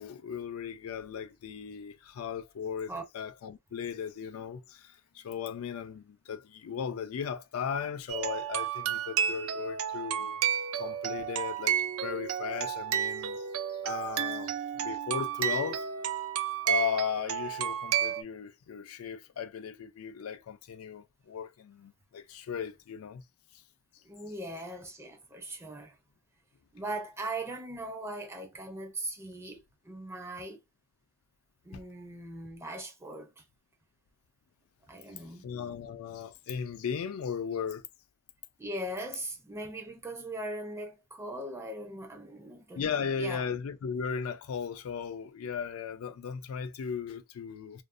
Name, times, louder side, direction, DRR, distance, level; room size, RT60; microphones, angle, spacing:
voice 1, 0.0-10.4 10.8-13.4 13.7-15.8 16.6-23.2 31.7-31.8 35.4-37.8 42.8-47.8, left 7 dB, 85° left, 0.4 m, -36 dB
sound 1, 8.1-18.2, right 9 dB, 75° right, 0.3 m, -32 dB
voice 2, 24.0-26.0 26.7-30.6 31.6-33.4 34.9-35.5 38.6-43.5, right 1 dB, 10° right, 0.4 m, -40 dB
2.5 x 2.0 x 2.4 m
head